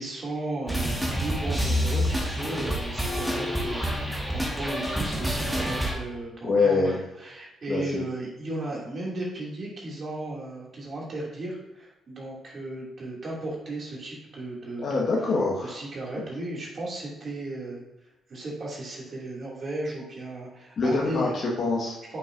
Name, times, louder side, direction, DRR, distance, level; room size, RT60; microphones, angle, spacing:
voice 1, 0.0-15.1 15.6-17.8 18.3-21.3 22.1-22.2, right 2 dB, 45° right, -4 dB, 2.5 m, -35 dB
sound 1, 0.7-5.9, equal, 5° right, 1.5 m, -28 dB
voice 2, 6.4-7.0 7.7-8.0 14.8-15.7 16.1-16.2 20.8-22.0, left 3 dB, 55° left, -4 dB, 1.4 m, -25 dB
8.1 x 6.0 x 2.6 m, 0.95 s
cardioid pair, 85°, 0 cm